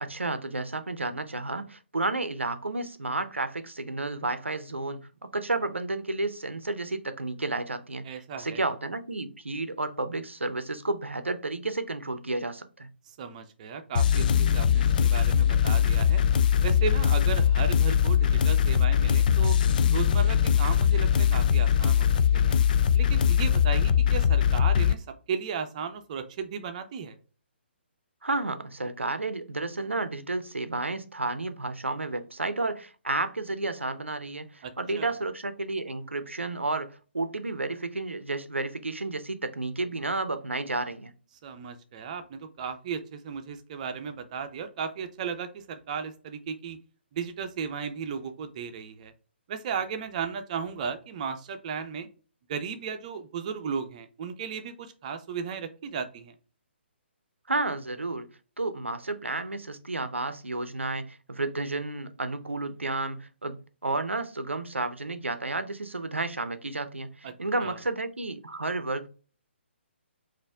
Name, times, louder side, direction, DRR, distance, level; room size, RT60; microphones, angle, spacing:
voice 1, 0.0-12.9 28.2-41.1 57.5-58.3 58.6-69.1, right 2 dB, 85° right, 0.6 m, -31 dB
voice 2, 8.0-8.6 13.2-16.2 16.6-19.6 19.9-22.1 22.3-22.6 22.9-27.2 34.6-35.1 41.4-46.8 47.1-49.1 49.5-52.1 52.5-56.3 67.2-67.3 67.6-67.8, right 6 dB, 35° right, 0.7 m, -35 dB
sound 1, 13.9-24.9, left 8 dB, 45° left, 0.3 m, -22 dB
4.3 x 2.6 x 3.4 m
figure-of-eight pair, 135°, 6 cm